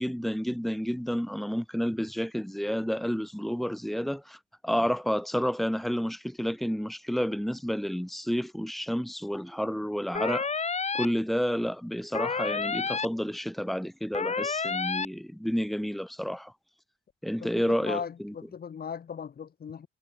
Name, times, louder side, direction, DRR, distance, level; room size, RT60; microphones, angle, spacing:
voice 1, 0.0-10.5 10.9-16.5 17.2-18.3, equal, ahead, 3.9 m, -30 dB
sound 1, 10.1-11.0 12.1-13.0 14.1-15.0, left 5 dB, 35° left, 6.4 m, -29 dB
voice 2, 17.4-19.9, left 7 dB, 50° left, 5.7 m, -38 dB
cardioid pair, 90°, 20 cm